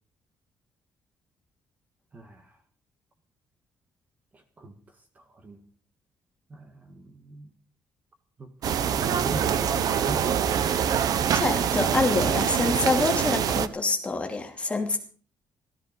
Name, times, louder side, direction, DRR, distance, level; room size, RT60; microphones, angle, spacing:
voice 1, 2.1-2.6 4.3-5.6 6.5-7.5 8.4-8.7 9.0-10.3, right 2 dB, 20° right, 1.8 m, -40 dB
sound 1, 8.6-13.7, right 8 dB, 50° right, 1.0 m, -24 dB
voice 2, 11.3-15.0, left 3 dB, 15° left, 2.5 m, -26 dB
16.5 x 13.5 x 5.3 m
cardioid pair, 170°, 8 cm